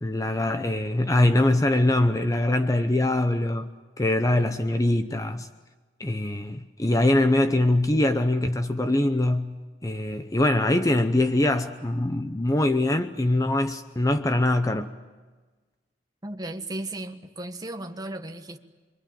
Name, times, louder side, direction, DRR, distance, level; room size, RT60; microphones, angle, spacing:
voice 1, 0.0-3.7 4.0-5.5 6.0-14.9, left 1 dB, 20° left, 0.7 m, -23 dB
voice 2, 16.2-18.6, right 1 dB, 20° right, 1.4 m, -35 dB
26.5 x 23.5 x 8.9 m
head